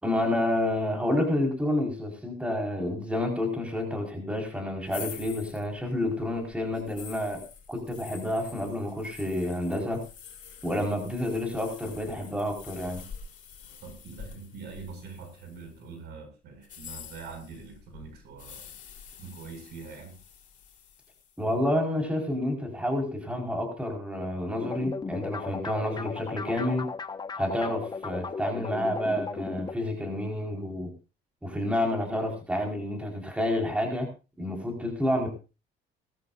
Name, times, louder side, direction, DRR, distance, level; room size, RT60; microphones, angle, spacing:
voice 1, 0.0-7.4 7.7-10.0 10.6-13.0 21.4-26.9 27.4-30.9 31.4-34.1 34.4-35.3, left 1 dB, 5° right, 2 dB, 4.7 m, -29 dB
sound 1, 4.9-15.8 16.6-21.4, left 7 dB, 50° left, 3.7 m, -47 dB
voice 2, 13.8-18.7 19.2-20.2, right 5 dB, 75° right, 5 dB, 6.6 m, -44 dB
sound 2, 24.6-29.7, left 5 dB, 25° left, 1.3 m, -36 dB
20.0 x 13.5 x 2.6 m, 0.31 s
cardioid pair, 110°, 17 cm